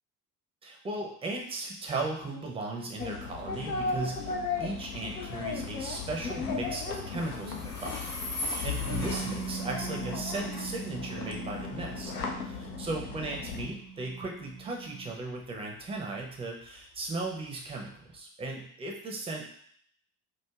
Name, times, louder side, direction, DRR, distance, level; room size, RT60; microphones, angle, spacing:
voice 1, 0.6-4.3 4.6-12.1 12.4-19.4, right 2 dB, 10° right, 0 dB, 0.6 m, -37 dB
sound 1, 3.0-13.7, left 5 dB, 75° left, 0.6 m, -36 dB
Train, 3.5-18.2, left 2 dB, 55° left, 0.9 m, -43 dB
Bass guitar, 8.9-15.1, right 6 dB, 80° right, 0.6 m, -41 dB
4.7 x 2.1 x 2.3 m, 0.63 s
figure-of-eight pair, 60°, 47 cm